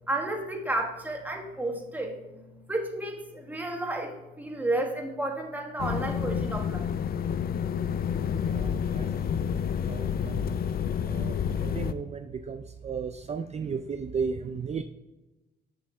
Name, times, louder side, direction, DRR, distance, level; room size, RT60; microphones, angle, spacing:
voice 1, 0.1-2.2 2.7-6.9, right 2 dB, 10° right, 1 dB, 1.5 m, -32 dB
sound 1, 5.8-11.9, left 7 dB, 50° left, 0.5 m, -29 dB
voice 2, 9.9-10.6 11.1-11.4 11.6-14.8, right 5 dB, 35° right, 8 dB, 0.4 m, -34 dB
7.1 x 5.5 x 3.4 m, 1.0 s
cardioid pair, 90°, 20 cm